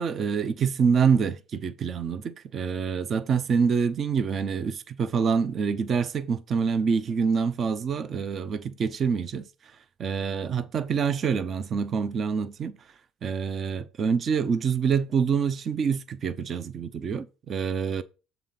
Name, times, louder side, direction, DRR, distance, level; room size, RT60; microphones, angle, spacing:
voice 1, 0.0-12.9 13.2-18.0, right 6 dB, 40° right, 0.7 m, -26 dB
7.1 x 4.0 x 5.8 m
supercardioid pair, 95°, 0 cm